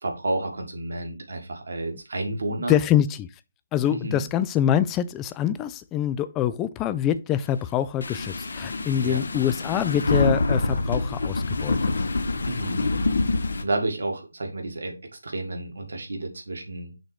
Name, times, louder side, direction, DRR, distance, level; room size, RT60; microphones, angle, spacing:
voice 1, 0.0-2.8 3.9-4.2 9.0-9.2 12.5-12.9 13.6-14.9 15.2-16.9, right 2 dB, 65° right, 1.9 m, -30 dB
voice 2, 2.7-3.3 3.7-11.8, left 10 dB, 15° left, 0.3 m, -25 dB
sound 1, 8.0-13.6, left 3 dB, 60° left, 0.8 m, -26 dB
6.2 x 3.1 x 4.9 m
figure-of-eight pair, 155°, 0 cm